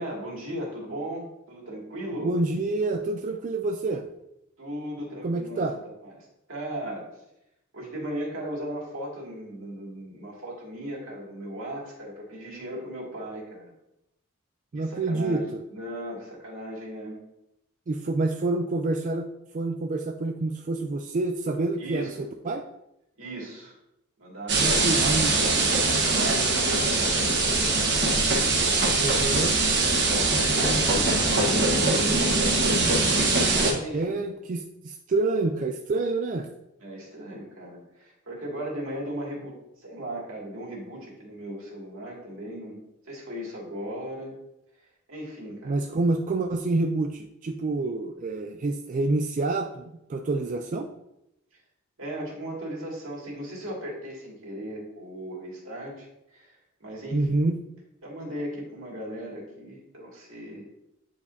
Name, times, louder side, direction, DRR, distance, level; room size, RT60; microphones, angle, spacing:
voice 1, 0.0-2.3 4.6-5.6 6.0-7.1 7.7-13.7 14.7-17.2 21.8-22.3 23.2-23.8 24.2-27.9 30.1-32.3 33.5-34.2 36.8-42.8 43.1-44.3 45.1-45.8 52.0-57.4 58.0-60.7, right 1 dB, 75° right, -3 dB, 2.1 m, -37 dB
voice 2, 2.2-4.1 5.2-5.8 14.7-15.6 17.9-19.3 19.5-22.7 24.6-25.3 25.6-25.7 29.0-29.6 31.8-32.9 33.7-36.5 45.7-50.9 57.1-57.6, right 2 dB, 40° right, 5 dB, 0.3 m, -28 dB
sound 1, 24.5-33.7, right 3 dB, 55° right, 1.2 m, -22 dB
8.7 x 4.9 x 2.7 m, 0.86 s
head